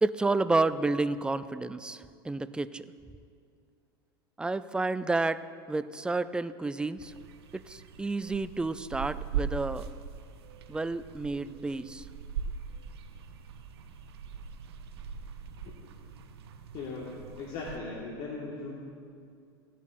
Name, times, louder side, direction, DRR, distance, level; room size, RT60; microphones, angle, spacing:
voice 1, 0.0-2.9 4.4-5.4 5.7-7.1 7.5-9.9 10.7-12.1, right 3 dB, 5° right, 14 dB, 0.3 m, -30 dB
sound 1, 7.0-17.8, right 7 dB, 85° right, 0.7 m, -40 dB
voice 2, 16.7-18.9, left 3 dB, 55° left, -4 dB, 1.7 m, -39 dB
16.0 x 11.0 x 2.6 m, 2.4 s
hypercardioid pair, 100°, 13 cm